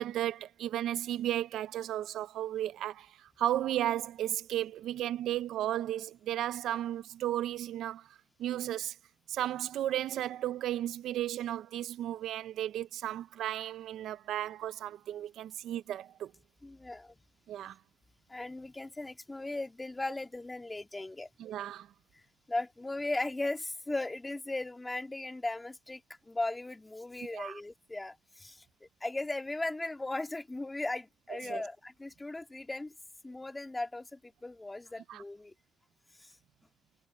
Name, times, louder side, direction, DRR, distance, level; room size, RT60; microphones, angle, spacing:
voice 1, 0.0-8.1 8.4-9.0 9.3-16.3 17.5-17.8 21.4-21.9 27.3-27.6 31.3-31.6 35.1-35.2, right 12 dB, 80° right, 0.6 m, -34 dB
voice 2, 16.6-17.1 18.3-21.3 22.1-22.2 22.5-32.9 33.2-35.5 36.2-36.3, left 2 dB, 15° left, 2.0 m, -37 dB
cardioid pair, 90°, 0 cm